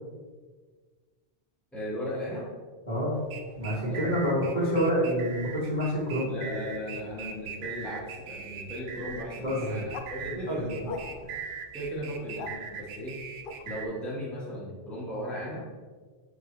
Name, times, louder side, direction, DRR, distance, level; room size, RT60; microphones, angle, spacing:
voice 1, 1.7-2.5 3.9-4.5 6.2-11.4 11.7-13.1 13.6-15.6, equal, ahead, -8 dB, 1.4 m, -37 dB
voice 2, 2.9-3.2 3.6-6.3 9.4-9.8 10.3-10.9, equal, 40° left, -8 dB, 2.2 m, -28 dB
sound 1, 3.1-13.9, right 6 dB, 70° right, 0.8 m, -41 dB
sound 2, 9.9-10.1 10.8-11.4 12.1-12.5 13.4-13.6, left 4 dB, 60° left, 0.7 m, -39 dB
6.4 x 5.1 x 3.2 m, 1.5 s
omnidirectional pair, 1.2 m